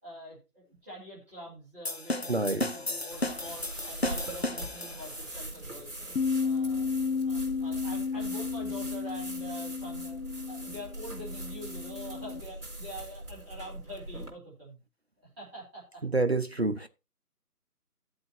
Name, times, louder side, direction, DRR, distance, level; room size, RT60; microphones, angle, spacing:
voice 1, 0.0-5.9 6.4-6.9 7.2-10.2 10.5-14.8 15.4-16.0, equal, 10° right, 2.5 m, -45 dB
sound 1, 1.8-5.3, left 2 dB, 45° left, 0.5 m, -34 dB
voice 2, 2.3-2.7 16.0-16.9, right 2 dB, 45° right, 0.5 m, -27 dB
sound 2, 3.1-14.3, right 1 dB, 70° right, 4.2 m, -42 dB
Bass guitar, 6.2-12.4, left 5 dB, 90° left, 0.7 m, -33 dB
14.5 x 7.8 x 2.8 m
figure-of-eight pair, 155°, 46 cm